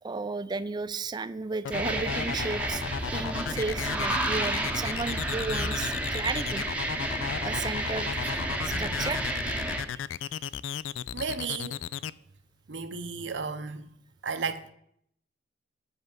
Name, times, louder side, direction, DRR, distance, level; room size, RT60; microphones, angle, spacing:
voice 1, 0.0-2.8 3.1-6.7 7.4-9.2 9.9-10.0, right 3 dB, 20° right, 0.3 m, -34 dB
sound 1, 1.6-12.1, left 8 dB, 85° left, 0.3 m, -35 dB
sound 2, 1.7-9.8, right 1 dB, 5° right, 0.8 m, -31 dB
voice 2, 11.1-11.8 12.7-13.9 14.2-14.7, right 5 dB, 70° right, 0.7 m, -34 dB
8.0 x 5.4 x 7.4 m
head